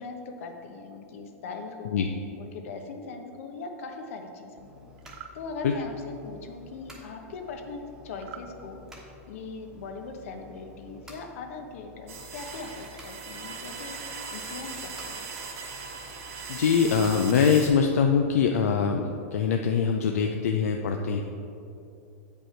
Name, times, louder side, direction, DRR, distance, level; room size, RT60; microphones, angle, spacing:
voice 1, 0.0-2.0 2.4-4.7 5.3-8.8 9.3-15.3, left 4 dB, 65° left, 4 dB, 1.0 m, -40 dB
sound 1, 4.6-18.1, left 2 dB, 5° right, 1.2 m, -51 dB
sound 2, 5.0-5.4 8.2-8.5, right 9 dB, 55° right, 0.5 m, -44 dB
sound 3, 12.1-17.7, right 4 dB, 80° right, 1.6 m, -39 dB
voice 2, 16.5-21.2, left 6 dB, 85° left, 3 dB, 0.5 m, -23 dB
8.3 x 5.3 x 4.4 m, 2.7 s
hypercardioid pair, 140°, 8 cm